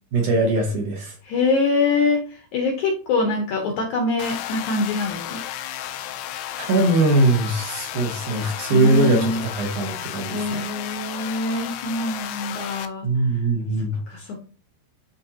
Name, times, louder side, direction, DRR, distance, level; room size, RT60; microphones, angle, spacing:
voice 1, 0.1-1.2 5.9-6.1 6.6-10.6 13.0-14.0, right 2 dB, 65° right, 1 dB, 2.1 m, -21 dB
voice 2, 1.2-5.4 8.7-9.4 10.3-13.1 14.1-14.5, left 3 dB, 70° left, 2 dB, 1.8 m, -24 dB
sound 1, 4.2-12.9, left 12 dB, 85° left, 2.8 m, -33 dB
12.5 x 4.1 x 2.9 m, 0.40 s
omnidirectional pair, 4.6 m